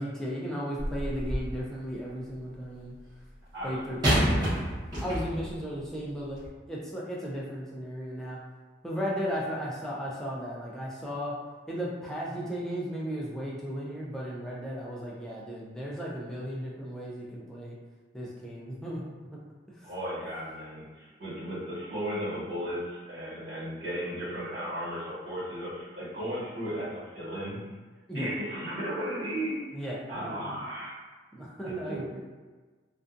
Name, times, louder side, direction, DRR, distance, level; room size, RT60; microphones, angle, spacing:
voice 1, 0.0-2.9 3.6-4.7 5.0-8.4 8.8-11.4 11.7-17.8 18.1-19.0 19.7-19.9 28.1-28.3 29.7-30.0 31.3-32.2, equal, 5° left, -5 dB, 0.3 m, -35 dB
sound 1, 0.8-1.6 4.0-5.6 6.4-6.5, equal, 20° right, 0.9 m, -28 dB
voice 2, 19.8-27.6 28.1-29.6 30.1-31.0 31.6-32.2, equal, 75° right, -10 dB, 1.4 m, -35 dB
2.5 x 2.2 x 2.4 m, 1.3 s
head